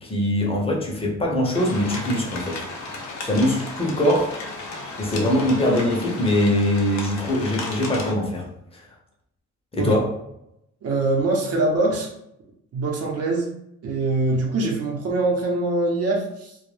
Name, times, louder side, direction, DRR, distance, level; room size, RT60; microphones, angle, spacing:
voice 1, 0.0-2.6 3.2-4.4 5.0-8.5 9.7-10.2, left 1 dB, 20° left, -1 dB, 0.7 m, -22 dB
sound 1, 1.5-8.1, left 3 dB, 70° left, 0.7 m, -34 dB
voice 2, 10.8-12.1 12.7-13.5 13.8-16.6, right 2 dB, 55° right, -1 dB, 0.8 m, -23 dB
2.3 x 2.1 x 3.2 m, 0.80 s
cardioid pair, 115°, 29 cm